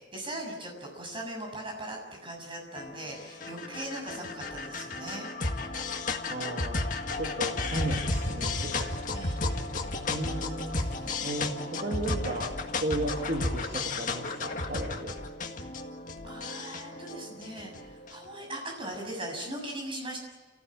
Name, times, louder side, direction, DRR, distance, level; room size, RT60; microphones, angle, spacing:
voice 1, 0.1-5.3 9.1-9.4 10.7-11.2 16.2-20.2, right 1 dB, 25° right, 1 dB, 7.1 m, -39 dB
sound 1, 2.7-18.3, left 2 dB, 45° left, 1.9 m, -33 dB
voice 2, 6.3-6.9 7.2-8.9 9.3-9.6 10.1-10.9 11.2-15.2, right 1 dB, 45° right, 0 dB, 2.6 m, -35 dB
29.5 x 15.5 x 8.6 m, 1.2 s
head